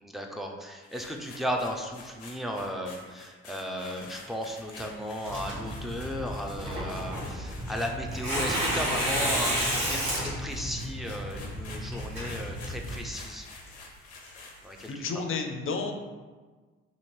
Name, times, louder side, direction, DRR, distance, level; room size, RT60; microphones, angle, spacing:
voice 1, 0.0-13.5 14.6-15.0 15.3-15.4, equal, ahead, 1 dB, 0.6 m, -35 dB
sound 1, 0.8-15.0, left 3 dB, 90° left, 0.5 m, -49 dB
Tearing, 5.2-13.0, equal, 70° right, 1.4 m, -32 dB
voice 2, 14.9-15.9, left 4 dB, 40° left, 5 dB, 0.6 m, -32 dB
2.9 x 2.8 x 4.4 m, 1.4 s
hypercardioid pair, 40°, 32 cm